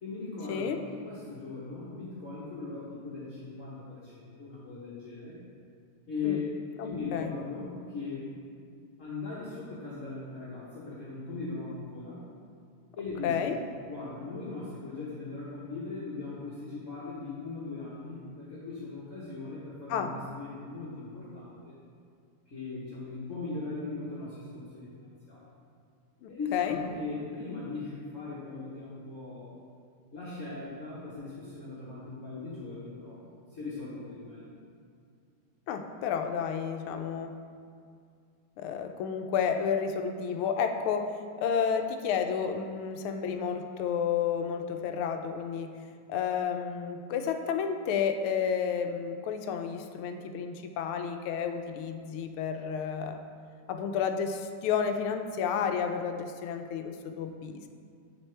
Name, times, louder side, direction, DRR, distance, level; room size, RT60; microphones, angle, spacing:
voice 1, 0.0-5.4 6.1-6.4 6.8-8.3 9.0-12.2 13.0-13.6 13.9-21.7 22.5-25.5 26.3-29.5 30.1-34.6, left 4 dB, 40° left, -9 dB, 1.3 m, -39 dB
voice 2, 6.8-7.3 13.2-13.5 19.9-20.1 26.2-26.8 35.7-37.3 38.6-41.1 41.4-45.7 46.1-53.2 53.7-57.7, left 7 dB, 80° left, 6 dB, 1.4 m, -31 dB
8.3 x 7.2 x 3.3 m, 2.3 s
omnidirectional pair, 2.4 m